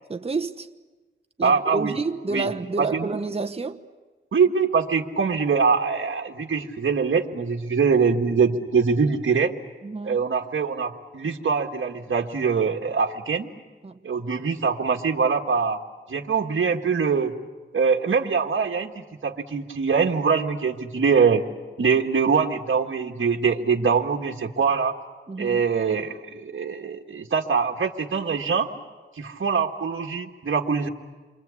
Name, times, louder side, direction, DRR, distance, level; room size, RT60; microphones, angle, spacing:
voice 1, 0.1-0.7 1.4-3.8 9.8-10.2 13.8-14.0 25.3-25.6, right 3 dB, 30° right, 1.0 m, -29 dB
voice 2, 1.4-1.9 2.3-2.5 2.8-3.1 4.3-9.5 10.0-13.5 14.0-15.8 16.1-17.3 17.7-21.4 21.8-24.9 25.4-28.7 29.2-30.9, right 5 dB, 65° right, 1.7 m, -23 dB
28.5 x 24.0 x 8.4 m
wide cardioid pair, 85°, 21 cm